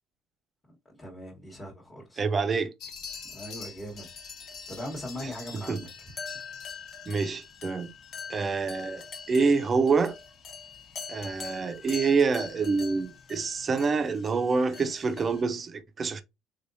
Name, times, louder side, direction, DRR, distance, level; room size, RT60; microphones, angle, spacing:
voice 1, 0.9-2.2 3.3-4.1 4.7-5.9, equal, 15° left, 1.2 m, -40 dB
voice 2, 2.2-2.7 5.7-5.8 7.1-7.9 8.3-9.0 9.3-10.2 11.1-16.2, right 4 dB, 30° right, 0.6 m, -26 dB
sound 1, 2.8-15.4, left 5 dB, 45° left, 1.0 m, -43 dB
3.7 x 3.4 x 2.6 m
cardioid pair, 130°, 0 cm